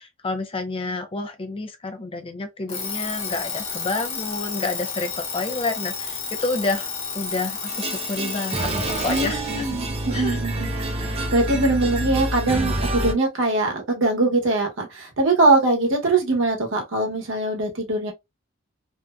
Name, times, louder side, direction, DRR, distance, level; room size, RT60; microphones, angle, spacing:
voice 1, 0.0-6.9 7.1-9.7 10.1-10.4, left 3 dB, 25° left, 0.4 m, -29 dB
Alarm, 2.7-9.4, left 5 dB, 90° left, 0.8 m, -31 dB
sound 1, 7.7-13.1, right 1 dB, 30° right, 0.5 m, -27 dB
voice 2, 9.1-10.7 11.0-18.1, right 2 dB, 70° right, 0.9 m, -22 dB
2.6 x 2.0 x 2.3 m
head